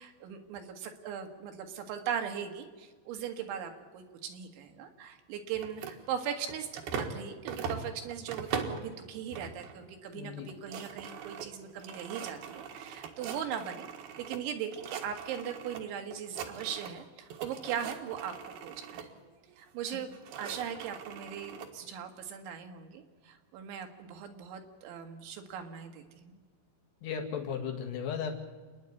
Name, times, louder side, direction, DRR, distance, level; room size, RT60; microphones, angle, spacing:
voice 1, 0.0-19.1 19.6-20.1 20.4-26.3, right 8 dB, 80° right, 5 dB, 4.1 m, -39 dB
sound 1, 5.5-7.2 7.5-8.9 9.3-9.8 10.1-10.2 10.4-14.4 14.7-15.8 16.1-17.0 17.3-19.1 19.9-21.7, right 6 dB, 65° right, 3.2 m, -41 dB
voice 2, 10.1-10.5 19.9-20.0 27.0-28.3, left 7 dB, 70° left, 3 dB, 3.8 m, -36 dB
28.5 x 10.5 x 9.5 m, 1.5 s
omnidirectional pair, 5.3 m